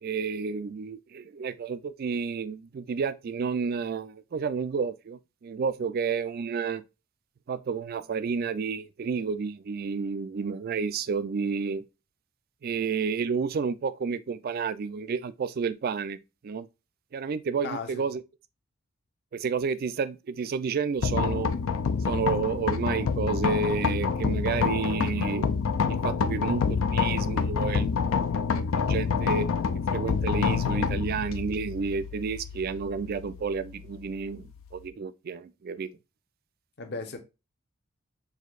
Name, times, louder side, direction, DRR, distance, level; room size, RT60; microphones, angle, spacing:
voice 1, 0.0-6.8 7.5-11.8 12.6-16.7 17.1-18.2 19.3-21.5 22.0-25.6 25.9-27.9 28.6-29.5 29.9-35.9, right 5 dB, 45° right, 0.3 m, -31 dB
voice 2, 17.6-18.1 36.8-37.2, left 4 dB, 50° left, 0.8 m, -36 dB
sound 1, 21.0-34.9, left 5 dB, 70° left, 0.4 m, -28 dB
6.3 x 2.6 x 2.3 m
head